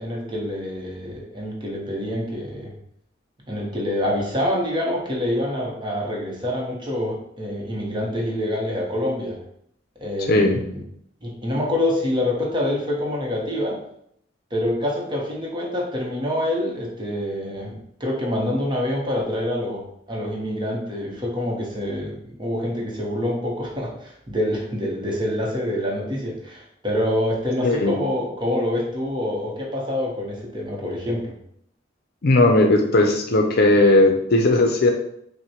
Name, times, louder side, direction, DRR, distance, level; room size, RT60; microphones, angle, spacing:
voice 1, 0.0-2.7 3.5-9.4 10.0-10.8 11.2-13.8 14.5-31.4, left 1 dB, 25° right, -2 dB, 0.9 m, -26 dB
voice 2, 10.3-10.6 27.6-28.0 32.2-34.9, left 2 dB, 55° left, 3 dB, 0.6 m, -17 dB
5.8 x 2.1 x 2.9 m, 0.71 s
head